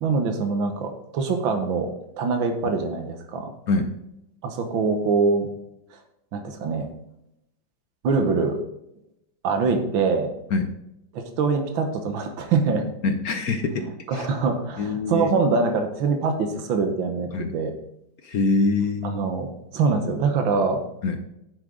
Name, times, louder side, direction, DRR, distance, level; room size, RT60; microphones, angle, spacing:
voice 1, 0.0-1.9 2.2-3.5 4.4-5.5 6.3-6.9 8.0-8.6 9.4-10.3 11.1-12.9 14.1-17.7 19.0-19.5 19.7-20.8, right 4 dB, 85° right, 5 dB, 1.9 m, -24 dB
voice 2, 13.0-13.9 14.1-14.3 14.8-15.3 17.3-17.5 18.2-19.2 21.0-21.2, left 3 dB, 60° left, 7 dB, 1.1 m, -24 dB
9.8 x 8.2 x 3.8 m, 0.83 s
omnidirectional pair, 2.1 m